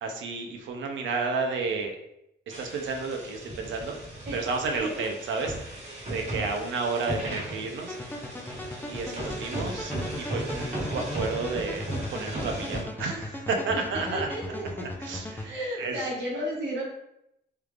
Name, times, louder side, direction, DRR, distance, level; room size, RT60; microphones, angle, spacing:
voice 1, 0.0-1.9 2.6-4.0 4.3-8.0 8.9-14.3 14.8-16.0, right 4 dB, 90° right, 3 dB, 0.6 m, -32 dB
sound 1, 2.5-12.8, right 1 dB, 35° right, 1.0 m, -36 dB
sound 2, 7.9-15.5, left 1 dB, 10° left, 0.4 m, -38 dB
voice 2, 13.7-14.8 15.4-16.8, right 1 dB, 70° right, -4 dB, 1.5 m, -33 dB
3.3 x 2.4 x 3.2 m, 0.79 s
cardioid pair, 110°, 19 cm